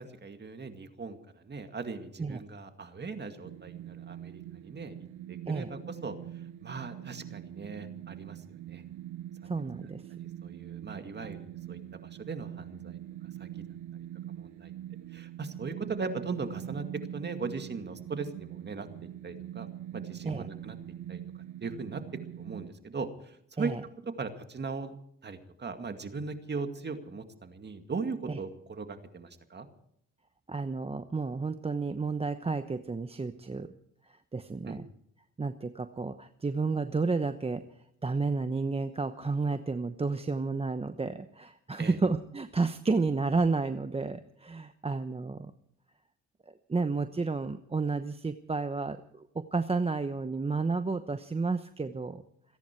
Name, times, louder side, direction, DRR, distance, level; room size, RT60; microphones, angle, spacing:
voice 1, 0.0-5.0 5.3-6.1 6.6-8.8 10.4-13.0 13.4-13.6 14.4-14.7 15.1-16.9 17.1-19.7 19.9-20.8 21.1-21.2 21.6-22.0 22.4-23.7 24.2-25.0 25.2-29.7 34.7-34.8 41.8-42.0, right 4 dB, 35° right, 7 dB, 2.2 m, -39 dB
sound 1, 3.4-22.7, right 12 dB, 80° right, 0.8 m, -43 dB
voice 2, 9.5-10.0 20.3-20.5 23.6-23.8 28.3-28.4 30.5-33.7 34.3-34.9 35.4-37.6 38.0-45.5 46.7-52.2, right 4 dB, 20° right, 10 dB, 0.9 m, -31 dB
28.0 x 10.5 x 4.6 m, 0.69 s
cardioid pair, 90°, 30 cm